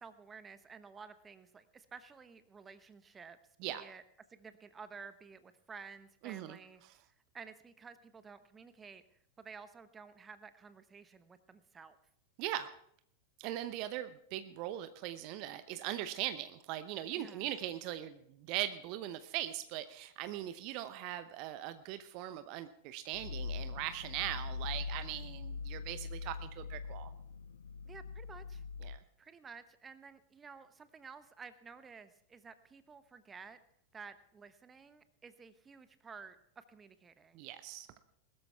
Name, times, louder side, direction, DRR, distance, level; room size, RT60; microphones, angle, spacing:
voice 1, 0.0-3.4 3.7-4.0 4.3-6.8 7.3-9.0 9.4-12.0 17.1-17.5 27.8-28.6 29.2-33.6 33.9-37.4, right 5 dB, 20° right, 13 dB, 1.0 m, -52 dB
voice 2, 6.2-6.6 12.4-12.7 13.4-27.1 28.8-29.0 37.3-37.9, right 13 dB, 45° right, 12 dB, 0.8 m, -40 dB
sound 1, 23.1-29.0, left 5 dB, 70° left, 0.6 m, -42 dB
20.5 x 13.0 x 3.5 m, 0.69 s
figure-of-eight pair, 90°, 0 cm